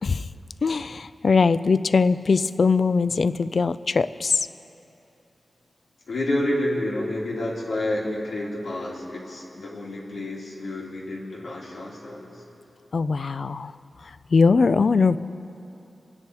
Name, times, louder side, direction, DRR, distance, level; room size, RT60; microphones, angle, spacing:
voice 1, 0.6-4.5 12.9-13.7 14.0-15.2, left 4 dB, 55° left, 14 dB, 0.4 m, -21 dB
voice 2, 6.1-12.4, left 1 dB, 85° left, -4 dB, 3.0 m, -29 dB
26.0 x 9.9 x 4.7 m, 2.9 s
wide cardioid pair, 145°, 0 cm